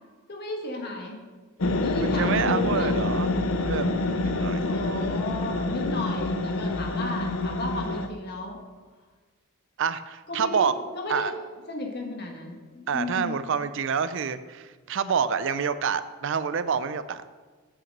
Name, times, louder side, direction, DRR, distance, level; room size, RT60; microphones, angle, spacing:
voice 1, 0.3-1.2 1.8-2.9 4.3-8.6 10.3-10.7 10.9-11.3 11.7-13.3, left 2 dB, 45° left, 1 dB, 1.6 m, -34 dB
sound 1, 1.6-8.1, left 2 dB, 65° left, 0.6 m, -27 dB
voice 2, 2.0-3.3 3.6-3.9 4.2-4.7 9.8-10.7 11.1-11.3 12.9-17.2, right 6 dB, 55° right, 13 dB, 0.4 m, -27 dB
8.6 x 5.9 x 6.6 m, 1.4 s
head